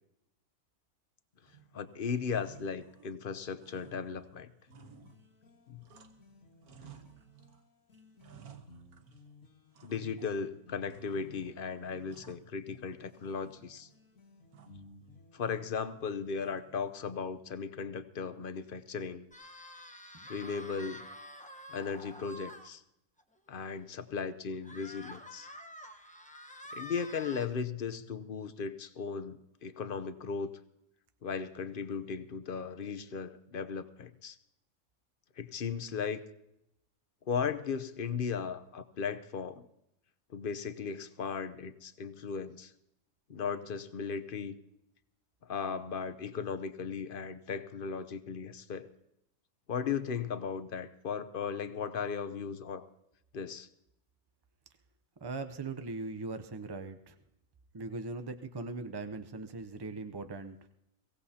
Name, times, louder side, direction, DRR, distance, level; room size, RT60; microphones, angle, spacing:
sound 1, 1.4-2.0 2.4-3.3 3.6-6.3 6.6-7.6 7.9-9.3 9.7-10.4 10.9-11.5 11.9-12.9 13.2-14.0 14.5-14.9 16.4-16.9, right 7 dB, 80° right, 1.6 m, -57 dB
voice 1, 1.7-4.5 5.7-5.8 9.8-13.9 15.3-19.2 20.3-21.1 21.7-22.8 23.5-25.5 26.7-30.5 31.2-34.4 35.4-36.2 37.3-39.6 40.3-42.7 43.3-44.5 45.4-48.9 49.7-52.9 53.3-53.7, left 6 dB, 45° left, 12 dB, 0.8 m, -37 dB
sound 2, 4.7-15.5, left 2 dB, 65° left, 2.1 m, -58 dB
sound 3, 19.3-22.7 23.2-23.3 23.6-23.7 24.6-27.5, equal, 5° left, 0.8 m, -48 dB
voice 2, 55.2-57.1 57.7-60.6, right 3 dB, 40° right, 8 dB, 0.3 m, -40 dB
22.5 x 17.0 x 2.8 m, 0.81 s
omnidirectional pair, 1.6 m